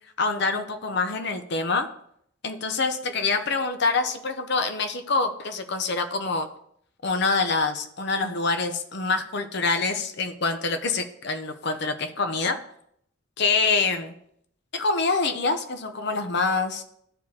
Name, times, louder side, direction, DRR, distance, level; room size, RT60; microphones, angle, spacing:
voice 1, 0.2-1.9 2.4-6.5 7.0-12.6 13.4-14.1 14.7-16.8, left 4 dB, 55° left, 7 dB, 0.7 m, -25 dB
13.0 x 4.8 x 2.8 m, 0.70 s
head